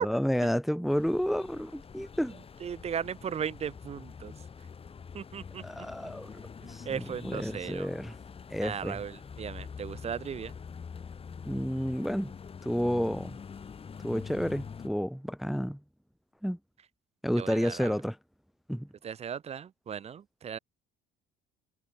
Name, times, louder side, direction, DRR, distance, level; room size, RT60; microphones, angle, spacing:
voice 1, 0.0-2.3 5.6-6.3 6.7-6.8 7.2-8.1 8.5-9.0 11.4-12.3 12.6-13.4 14.0-15.8 16.4-16.6 17.2-18.2 18.7-18.9, equal, ahead, 0.5 m, -30 dB
sound 1, 0.9-14.9, left 6 dB, 30° left, 2.6 m, -45 dB
voice 2, 2.6-4.3 5.1-5.9 6.6-7.9 8.6-10.5 17.4-18.0 19.0-20.6, right 8 dB, 35° right, 0.8 m, -37 dB
cardioid pair, 125°, 20 cm